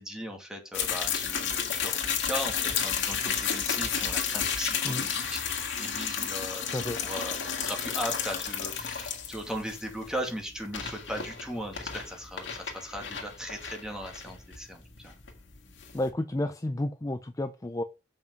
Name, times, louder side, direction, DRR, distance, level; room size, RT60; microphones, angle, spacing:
voice 1, 0.0-15.1, equal, 5° right, 2 dB, 2.2 m, -38 dB
sound 1, 0.7-16.1, left 7 dB, 75° left, 2.0 m, -32 dB
voice 2, 15.9-17.8, left 1 dB, 20° left, 9 dB, 0.5 m, -31 dB
7.1 x 5.4 x 5.4 m, 0.29 s
head